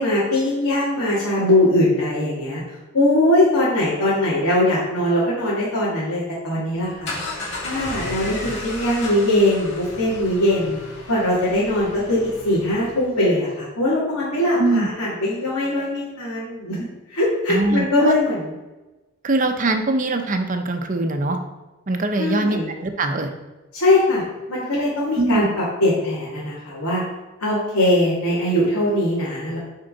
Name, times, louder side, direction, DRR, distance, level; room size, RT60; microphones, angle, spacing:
voice 1, 0.0-2.6 2.9-7.2 7.6-10.8 11.1-16.8 17.1-18.5 22.2-22.7 23.7-24.2 24.5-27.0 27.4-29.6, left 1 dB, 85° left, -10 dB, 2.5 m, -21 dB
sound 1, 6.8-13.1, left 2 dB, 55° left, 2.4 m, -34 dB
voice 2, 14.6-14.9 17.5-18.2 19.2-21.4 21.9-23.3 25.2-25.5, right 2 dB, 35° right, 6 dB, 0.6 m, -22 dB
8.9 x 4.5 x 4.0 m, 1.1 s
head